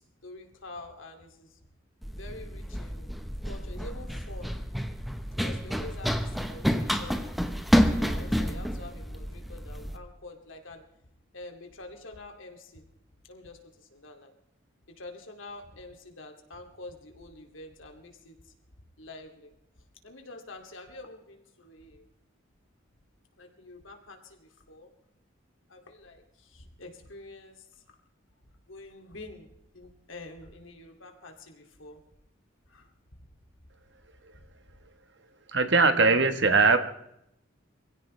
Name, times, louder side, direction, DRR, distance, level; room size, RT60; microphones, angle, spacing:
voice 1, 0.0-1.6 2.1-3.1 3.4-4.5 5.3-7.2 7.9-10.8 11.3-12.8 13.3-14.3 15.0-18.5 19.0-19.5 20.0-22.0 23.4-24.9 25.7-27.8 28.7-32.0 32.7-32.9 33.2-33.3, left 2 dB, 80° left, 4 dB, 2.5 m, -47 dB
Run, 2.0-10.0, equal, ahead, 0.8 m, -29 dB
voice 2, 35.5-36.8, right 4 dB, 60° right, 9 dB, 1.2 m, -20 dB
24.0 x 16.5 x 3.3 m, 0.79 s
head